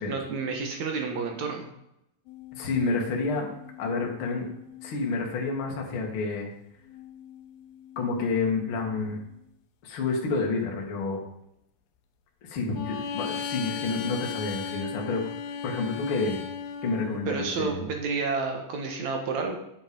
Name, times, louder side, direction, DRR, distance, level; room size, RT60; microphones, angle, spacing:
voice 1, 0.1-1.7 17.3-19.6, right 4 dB, 65° right, 3 dB, 1.9 m, -30 dB
sound 1, 2.3-5.5 6.9-9.2 12.7-17.3, left 6 dB, 75° left, 2.5 m, -38 dB
voice 2, 2.5-3.5 3.8-4.5 4.8-6.5 8.0-9.2 9.8-11.2 12.4-15.2 15.6-16.4 16.8-17.8, left 3 dB, 40° left, 0 dB, 2.0 m, -29 dB
9.8 x 7.9 x 5.4 m, 0.82 s
omnidirectional pair, 5.1 m